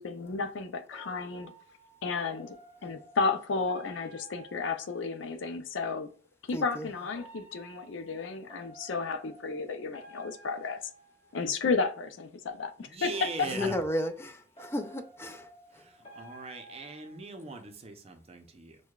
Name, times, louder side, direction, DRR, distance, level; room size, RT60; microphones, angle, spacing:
voice 1, 0.0-1.5 2.0-2.6 2.8-6.1 6.5-10.8 11.3-13.1, left 4 dB, 80° left, 0.5 m, -33 dB
sound 1, 0.9-5.5 7.1-11.7 13.1-17.7, right 1 dB, 30° left, 1.1 m, -53 dB
voice 2, 6.5-6.9 13.5-15.5 15.7-15.8, left 1 dB, 15° left, 0.4 m, -33 dB
voice 3, 12.8-13.8 15.7-18.8, right 3 dB, 35° right, 0.6 m, -41 dB
6.3 x 2.2 x 2.3 m
head